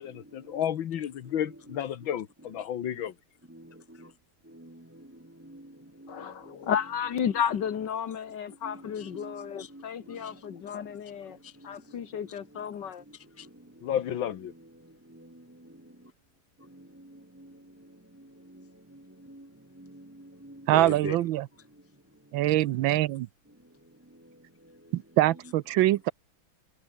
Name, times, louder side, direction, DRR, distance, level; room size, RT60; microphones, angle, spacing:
voice 1, 0.0-3.2 13.8-14.5, left 10 dB, 90° left, 2.0 m, -32 dB
voice 2, 1.4-1.8 2.4-3.0 3.5-4.1 4.5-7.9 8.6-10.6 10.9-11.0 11.4-11.8 12.4-12.6 13.4-13.5 13.8-14.7 15.1-15.7 16.7-19.5 19.7-21.3 25.2-25.5, equal, 15° right, 0.5 m, -46 dB
voice 3, 6.1-11.4 11.6-13.0, left 8 dB, 65° left, 2.0 m, -33 dB
voice 4, 20.7-21.4 22.3-23.3 24.9-26.1, right 15 dB, 90° right, 1.4 m, -24 dB
omnidirectional pair, 2.1 m